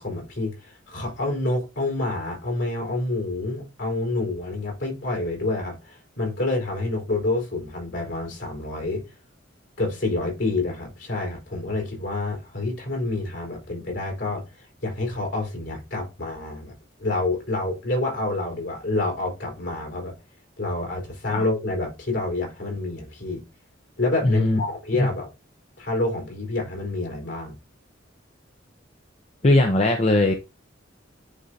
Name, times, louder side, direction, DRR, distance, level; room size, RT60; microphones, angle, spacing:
voice 1, 0.0-9.0 9.8-16.7 17.0-20.1 20.6-23.4 24.0-25.3 25.8-27.5, left 2 dB, 65° left, 4.1 m, -28 dB
voice 2, 24.2-24.6 25.0-25.1 29.4-30.3, left 1 dB, 35° left, 0.8 m, -19 dB
9.9 x 3.8 x 2.8 m
head